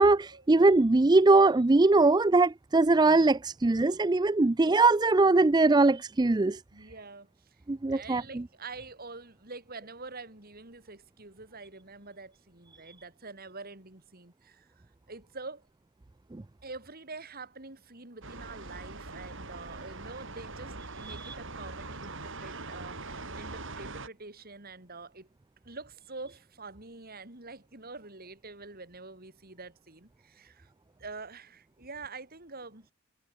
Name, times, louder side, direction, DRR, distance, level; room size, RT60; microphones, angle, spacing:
voice 1, 0.0-6.6 7.7-8.4 16.3-16.4 21.1-21.3, right 3 dB, 20° right, 0.4 m, -22 dB
voice 2, 6.7-7.6 7.9-14.7 15.1-15.6 16.6-25.3 25.6-30.7 31.0-32.9, right 3 dB, 45° right, 3.8 m, -46 dB
sound 1, 18.2-24.1, right 3 dB, 60° right, 5.2 m, -42 dB
head